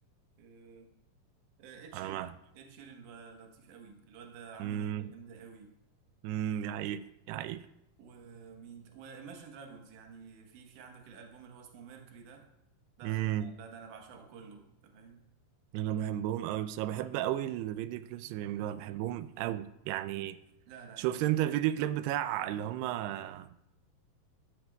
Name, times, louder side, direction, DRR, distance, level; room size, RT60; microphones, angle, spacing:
voice 1, 0.4-0.9 1.6-5.7 8.0-12.5 13.0-15.2 20.7-21.7, right 6 dB, 65° right, 2.3 m, -51 dB
voice 2, 1.9-2.3 4.6-5.1 6.2-7.6 13.0-13.5 15.7-20.4 21.0-23.5, right 12 dB, 85° right, 2.6 m, -33 dB
14.0 x 11.5 x 2.3 m
omnidirectional pair, 4.7 m